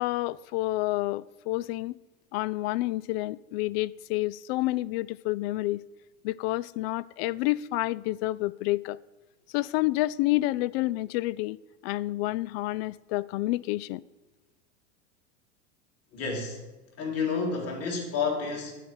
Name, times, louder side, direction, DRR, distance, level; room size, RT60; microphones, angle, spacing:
voice 1, 0.0-2.0 2.3-5.8 6.2-9.0 9.5-11.6 11.8-14.0, left 18 dB, 60° left, 0.5 m, -29 dB
voice 2, 16.1-16.6 17.0-18.7, left 5 dB, 45° left, 3.0 m, -30 dB
11.5 x 4.7 x 8.1 m
hypercardioid pair, 100°, 35 cm